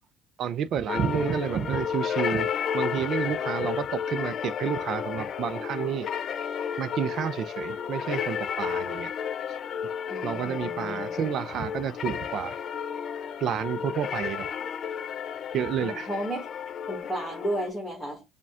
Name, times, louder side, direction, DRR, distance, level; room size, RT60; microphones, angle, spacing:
voice 1, 0.4-2.5 2.7-6.1 6.8-9.1 10.2-12.6 13.4-14.5 15.5-16.1, right 8 dB, 50° right, 0.4 m, -30 dB
sound 1, 0.9-17.7, left 8 dB, 45° left, 0.4 m, -32 dB
voice 2, 10.1-11.1 15.8-16.5 16.9-18.2, right 1 dB, 5° left, 1.5 m, -33 dB
5.0 x 2.2 x 3.5 m
cardioid pair, 130°, 0 cm